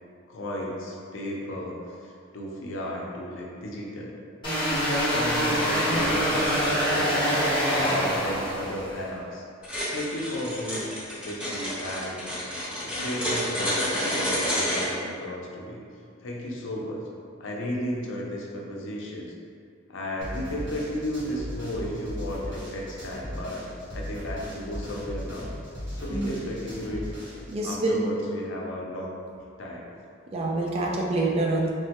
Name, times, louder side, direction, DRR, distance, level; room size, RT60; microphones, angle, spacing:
voice 1, 0.3-4.1 4.7-9.4 9.9-10.8 11.2-12.2 12.8-15.8 16.2-17.0 17.4-19.3 19.9-23.6 23.9-25.5 26.0-27.0 27.6-29.1 29.6-29.9, left 1 dB, 80° left, -2 dB, 0.5 m, -34 dB
sound 1, 4.4-9.0, equal, 25° left, 0.9 m, -25 dB
sound 2, 9.6-14.9, equal, 10° right, 1.0 m, -29 dB
sound 3, 20.2-27.5, equal, 70° right, 1.1 m, -37 dB
voice 2, 27.5-28.0 30.3-31.7, right 2 dB, 30° right, -2 dB, 0.3 m, -26 dB
3.2 x 2.2 x 2.8 m, 2.3 s
head